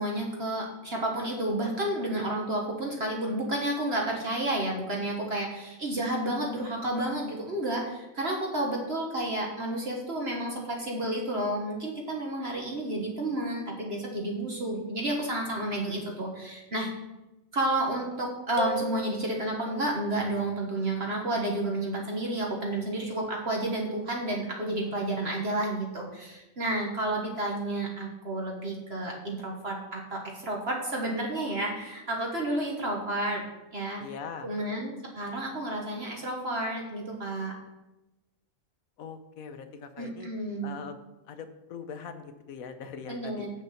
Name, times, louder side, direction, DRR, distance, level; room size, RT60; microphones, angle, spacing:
voice 1, 0.0-16.9 17.5-33.4 33.7-34.0 34.4-37.5 40.0-40.8 43.1-43.5, right 1 dB, 45° right, -1 dB, 1.6 m, -31 dB
sound 1, 18.6-20.1, right 1 dB, 25° left, 1.1 m, -37 dB
voice 2, 34.0-34.5 39.0-40.3 40.6-41.0 41.3-43.5, left 6 dB, 75° left, 9 dB, 1.3 m, -41 dB
8.4 x 6.6 x 5.7 m, 1.0 s
omnidirectional pair, 1.5 m